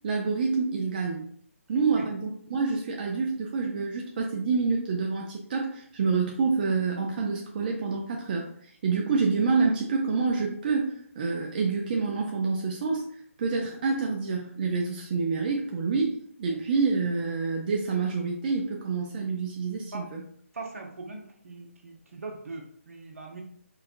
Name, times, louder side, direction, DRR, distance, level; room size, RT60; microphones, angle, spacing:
voice 1, 0.0-1.3 1.7-13.1 13.4-20.2, right 4 dB, 40° right, 0 dB, 0.5 m, -27 dB
voice 2, 20.5-23.4, right 3 dB, 70° right, 1 dB, 0.9 m, -41 dB
4.6 x 2.3 x 2.5 m, 0.62 s
figure-of-eight pair, 150°, 8 cm